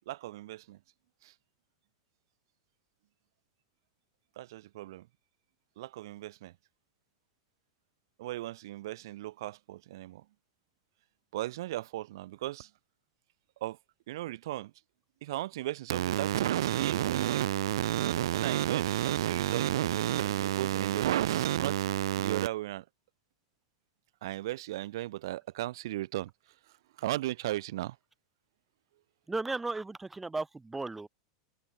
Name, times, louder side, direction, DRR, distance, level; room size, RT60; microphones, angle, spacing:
voice 1, 0.1-0.8 1.2-1.3 4.4-5.1 5.8-6.5 8.2-10.2 11.3-12.7 13.6-13.8 14.1-14.7 15.2-17.4 18.3-21.1 21.6-21.8 22.2-22.8 24.2-26.3 27.0-28.0, right 15 dB, 65° right, 3.1 m, -37 dB
sound 1, 15.9-22.5, right 13 dB, 80° right, 0.6 m, -29 dB
voice 2, 29.3-31.1, right 3 dB, 5° right, 2.7 m, -35 dB
open air
supercardioid pair, 160°, 2 cm